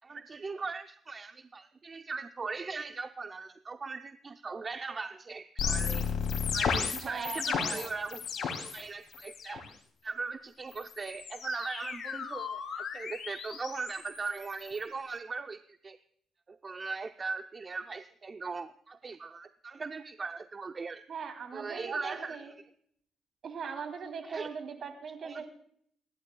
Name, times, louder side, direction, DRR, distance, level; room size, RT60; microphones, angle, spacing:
voice 1, 0.0-6.1 6.5-9.6 10.0-16.0 16.5-21.0 21.5-22.5 24.2-24.5 25.2-25.5, right 4 dB, 35° right, 8 dB, 0.6 m, -39 dB
sound 1, 5.6-8.8 9.1-9.7 10.7-14.8, left 6 dB, 65° left, 2.7 m, -34 dB
voice 2, 7.0-7.9 21.1-22.5 23.4-25.5, right 6 dB, 55° right, 5 dB, 3.1 m, -40 dB
28.0 x 11.0 x 2.3 m, 0.65 s
cardioid pair, 90°, 0 cm